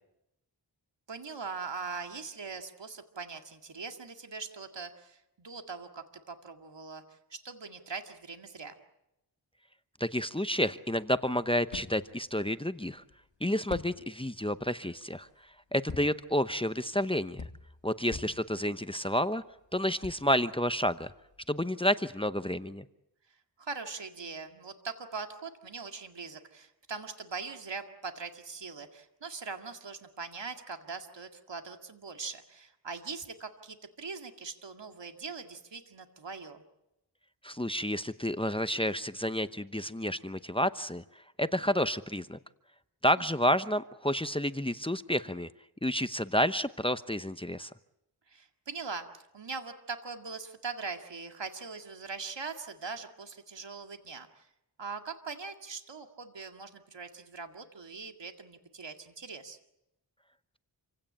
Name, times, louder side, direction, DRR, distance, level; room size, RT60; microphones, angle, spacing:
voice 1, 1.1-8.8 18.3-18.8 23.6-36.6 43.2-43.3 48.3-54.5 54.8-59.6, right 4 dB, 70° right, 5 dB, 2.1 m, -41 dB
voice 2, 10.0-13.0 13.4-15.3 15.7-17.5 17.8-19.4 19.7-21.1 21.5-22.9 37.4-41.0 41.4-42.4 43.0-45.5 45.8-47.7, equal, 10° left, 12 dB, 0.8 m, -30 dB
sound 1, 11.0-21.7, left 4 dB, 75° left, 2.2 m, -48 dB
27.5 x 16.5 x 8.7 m, 0.87 s
wide cardioid pair, 50°, 44 cm